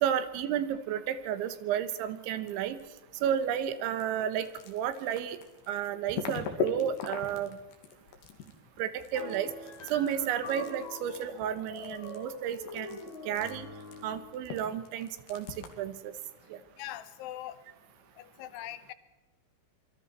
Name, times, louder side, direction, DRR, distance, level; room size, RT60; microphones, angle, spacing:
voice 1, 0.0-2.8 3.2-5.4 5.7-7.6 8.8-9.5 9.9-13.0 13.3-13.7 14.0-15.5 15.8-16.1 16.5-16.6, right 9 dB, 80° right, 12 dB, 3.5 m, -32 dB
sound 1, 1.7-2.9 3.1-15.9, left 6 dB, 65° left, 4.1 m, -40 dB
sound 2, 9.1-14.4, left 2 dB, 40° left, 5.9 m, -44 dB
voice 2, 16.8-17.6 18.2-18.9, left 13 dB, 90° left, 13 dB, 3.5 m, -41 dB
26.0 x 23.0 x 4.4 m, 1.1 s
omnidirectional pair, 5.3 m